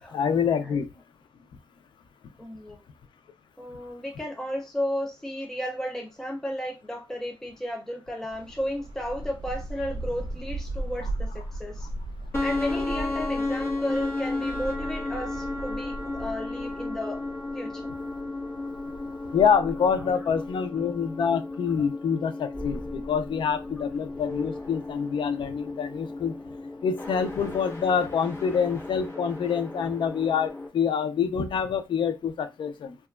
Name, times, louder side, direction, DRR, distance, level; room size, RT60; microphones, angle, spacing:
voice 1, 0.1-0.9 19.3-26.3 26.8-33.0, left 7 dB, 75° left, 0.4 m, -26 dB
voice 2, 2.4-2.8 3.6-11.9 12.4-17.2 17.5-17.9, equal, 5° left, 0.3 m, -33 dB
sound 1, 8.3-19.5, right 1 dB, 80° right, 0.4 m, -38 dB
sound 2, 12.3-30.7, left 2 dB, 30° left, 0.9 m, -34 dB
2.8 x 2.3 x 2.3 m
wide cardioid pair, 175°, 8 cm